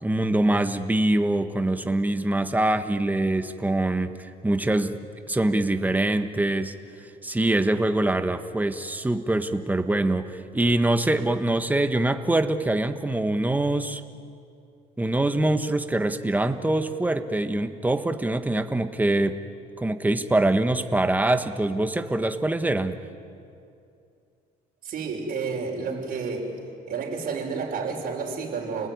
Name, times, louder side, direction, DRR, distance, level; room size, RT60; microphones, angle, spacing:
voice 1, 0.0-5.0 5.3-6.7 7.2-14.0 15.0-19.4 19.8-23.0, right 2 dB, 10° right, 8 dB, 1.4 m, -24 dB
voice 2, 24.8-26.5 26.9-28.9, right 5 dB, 55° right, 0 dB, 6.2 m, -30 dB
29.5 x 20.0 x 9.6 m, 2.5 s
cardioid pair, 110°, 17 cm